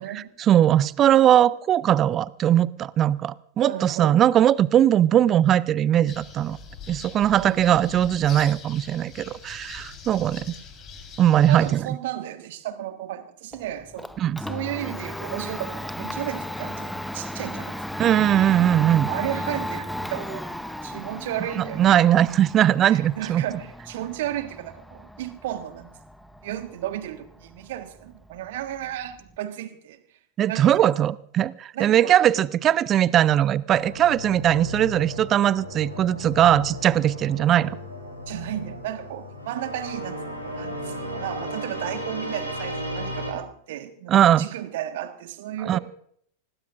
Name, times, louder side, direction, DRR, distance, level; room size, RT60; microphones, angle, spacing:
voice 1, 0.0-6.6 6.9-10.4 11.2-11.9 14.2-14.4 18.0-19.1 21.6-23.4 30.4-37.8 44.1-44.5 45.7-45.8, right 11 dB, 30° right, 21 dB, 0.6 m, -20 dB
voice 2, 3.6-4.2 7.4-7.7 11.5-14.1 14.5-17.8 19.1-20.5 20.8-22.0 22.8-25.9 26.4-30.0 30.5-30.9 31.7-32.1 38.3-45.8, right 12 dB, 55° right, 8 dB, 1.6 m, -34 dB
sound 1, 6.1-11.8, left 5 dB, 30° left, 4.2 m, -42 dB
Domestic sounds home sounds, 13.5-29.4, equal, ahead, 0.9 m, -35 dB
sound 2, 33.7-43.3, equal, 90° left, 6.4 m, -35 dB
25.5 x 19.0 x 2.6 m, 0.64 s
figure-of-eight pair, 90°, 0 cm